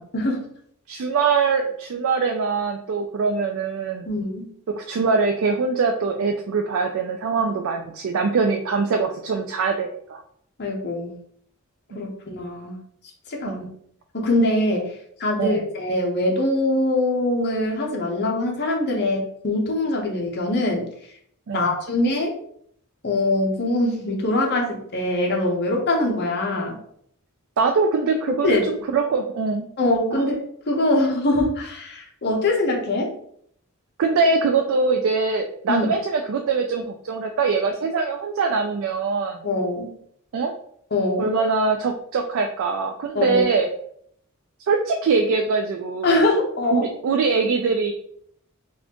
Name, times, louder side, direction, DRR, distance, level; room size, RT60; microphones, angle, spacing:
voice 1, 0.1-0.5 4.1-4.5 10.6-11.1 11.9-12.8 13.3-13.7 14.1-14.9 15.2-20.9 21.5-22.4 23.0-26.8 28.4-28.6 29.8-33.1 35.7-35.9 39.4-40.0 40.9-41.4 43.1-43.4 46.0-46.9, left 2 dB, 50° left, 0 dB, 0.8 m, -23 dB
voice 2, 0.9-4.1 4.8-10.2 11.9-12.1 13.5-13.7 15.4-15.6 21.5-21.8 27.6-29.7 30.1-30.2 34.0-39.4 40.3-40.5 41.2-43.7 44.7-46.3 46.7-47.9, right 4 dB, 65° right, 4 dB, 0.3 m, -23 dB
4.0 x 2.4 x 2.9 m, 0.66 s
head